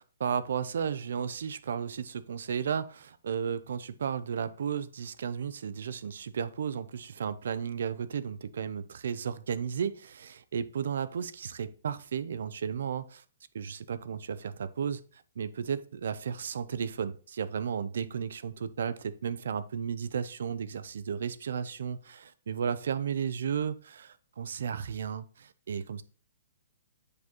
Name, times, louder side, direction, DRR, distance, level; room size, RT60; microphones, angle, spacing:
voice 1, 0.0-13.2 13.5-26.0, right 7 dB, 65° right, 14 dB, 0.5 m, -34 dB
8.1 x 4.9 x 3.0 m, 0.40 s
hypercardioid pair, 165°, 0 cm